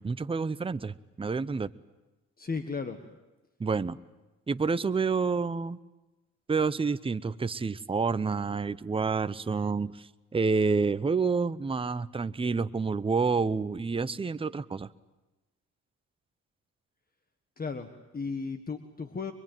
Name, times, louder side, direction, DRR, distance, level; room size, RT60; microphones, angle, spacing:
voice 1, 0.0-1.7 3.6-4.0 4.5-5.8 6.5-14.9, right 4 dB, 20° right, 13 dB, 0.8 m, -28 dB
voice 2, 2.4-3.1 17.6-19.3, left 4 dB, 30° left, 8 dB, 1.6 m, -35 dB
24.5 x 22.0 x 9.2 m, 1.1 s
cardioid pair, 90°, 30 cm